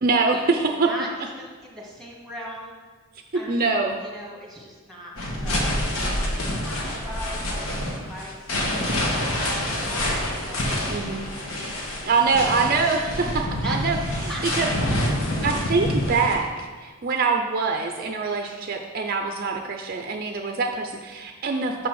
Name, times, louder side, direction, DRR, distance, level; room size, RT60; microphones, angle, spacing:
voice 1, 0.0-0.9 3.5-4.0 10.9-11.3 12.1-14.0 14.6-21.9, right 4 dB, 40° right, 4 dB, 0.5 m, -24 dB
voice 2, 0.8-2.7 3.3-5.7 6.2-8.6 9.1-10.1 10.4-11.6 13.6-13.8 14.3-14.4, equal, ahead, -3 dB, 1.5 m, -40 dB
sound 1, 5.2-16.4, left 1 dB, 70° left, 1.4 m, -27 dB
6.9 x 5.8 x 6.3 m, 1.5 s
head